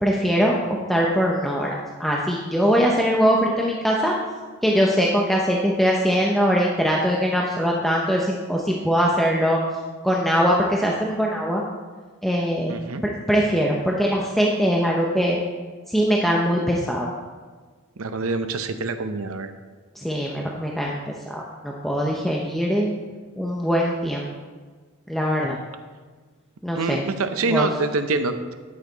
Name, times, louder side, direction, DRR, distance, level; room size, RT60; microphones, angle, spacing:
voice 1, 0.0-4.1 4.6-9.6 10.0-11.6 12.2-12.8 13.3-15.4 15.9-17.1 20.0-22.9 23.4-24.2 25.1-25.6 26.6-27.0 27.5-27.7, equal, ahead, -2 dB, 0.7 m, -22 dB
voice 2, 12.7-13.0 18.0-19.5 26.8-28.5, right 3 dB, 80° right, 9 dB, 0.7 m, -26 dB
11.0 x 6.6 x 4.0 m, 1.4 s
head